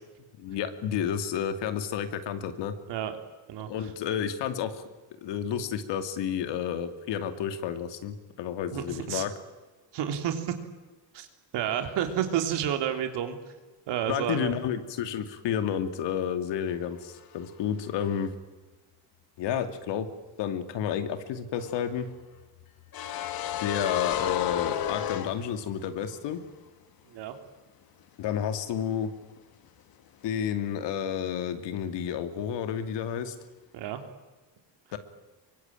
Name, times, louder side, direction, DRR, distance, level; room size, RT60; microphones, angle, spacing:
voice 1, 0.4-2.7 3.7-4.8 5.2-9.3 14.1-18.3 19.4-20.1 20.4-22.1 23.6-26.4 28.2-29.1 30.2-33.3 34.9-35.0, left 8 dB, 85° left, 9 dB, 2.6 m, -31 dB
voice 2, 8.7-9.2 9.9-10.5 11.1-11.3 11.5-13.4 13.9-14.5 27.1-27.3 33.7-34.0, right 9 dB, 80° right, 6 dB, 3.5 m, -30 dB
sound 1, 21.5-26.0 26.2-26.4 28.5-29.0 29.2-29.4, left 10 dB, 60° left, 1.7 m, -33 dB
24.0 x 23.5 x 9.0 m, 1.2 s
cardioid pair, 175°, 41 cm